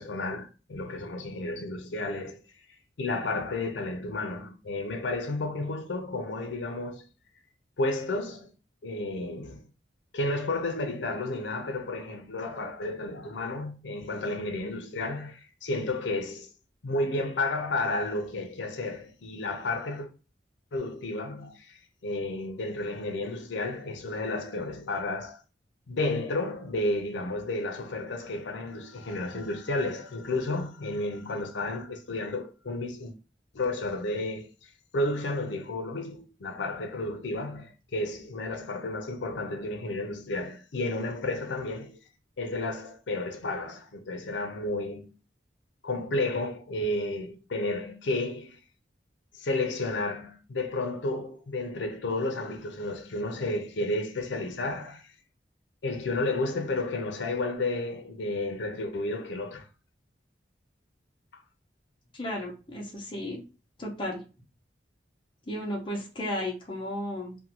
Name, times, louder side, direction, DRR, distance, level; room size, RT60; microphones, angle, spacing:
voice 1, 0.0-2.4 3.0-7.1 7.8-8.5 8.8-9.6 10.1-16.5 16.8-20.1 20.7-25.4 25.9-33.1 33.5-42.0 42.4-45.1 45.8-48.6 49.3-55.1 55.8-59.7, left 2 dB, 75° left, 0.5 m, -32 dB
voice 2, 62.1-63.4 63.8-64.2 65.5-67.4, left 1 dB, 30° left, 0.7 m, -34 dB
2.6 x 2.1 x 2.9 m
head